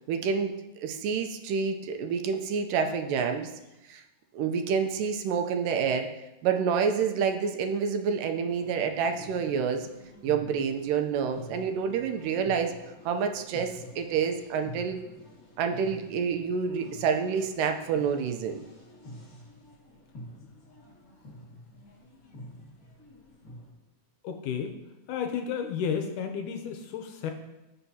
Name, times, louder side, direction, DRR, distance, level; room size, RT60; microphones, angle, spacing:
voice 1, 0.1-3.5 3.9-4.0 4.3-6.1 6.4-9.9 10.2-12.7 13.1-15.0 15.6-18.6, right 6 dB, 80° right, 5 dB, 2.3 m, -28 dB
sound 1, 8.5-23.7, left 1 dB, 45° left, 2.1 m, -48 dB
voice 2, 24.2-24.8 25.1-27.3, left 7 dB, 75° left, 5 dB, 2.0 m, -32 dB
16.0 x 5.6 x 2.8 m, 0.98 s
omnidirectional pair, 3.9 m